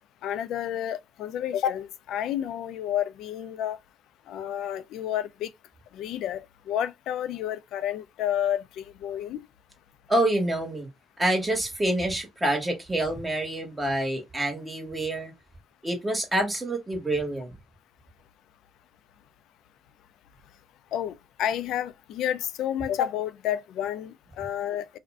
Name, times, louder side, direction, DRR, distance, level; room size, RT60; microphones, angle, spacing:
voice 1, 0.2-3.8 4.3-5.5 5.9-6.4 6.7-9.4 20.9-25.0, left 10 dB, 90° left, 0.3 m, -30 dB
voice 2, 10.1-10.9 11.2-15.3 15.8-17.5, right 1 dB, 15° right, 1.2 m, -27 dB
2.5 x 2.0 x 3.4 m
cardioid pair, 100°, 0 cm